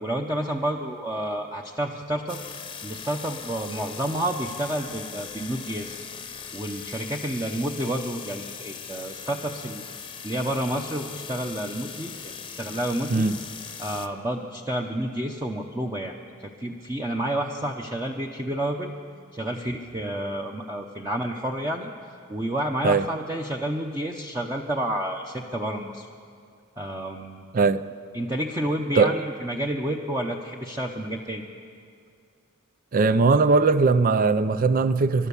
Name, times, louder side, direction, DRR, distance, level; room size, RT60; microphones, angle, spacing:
voice 1, 0.0-2.4 2.8-6.0 6.5-9.8 10.2-13.3 13.8-18.9 19.3-21.9 22.3-26.1 26.8-27.4 28.1-31.5, right 1 dB, 15° right, 0.9 m, -30 dB
sound 1, 2.3-14.1, left 6 dB, 25° left, 0.9 m, -40 dB
voice 2, 27.5-27.8 29.0-29.1 32.9-35.3, right 4 dB, 40° right, 0.5 m, -20 dB
29.5 x 12.5 x 7.1 m
head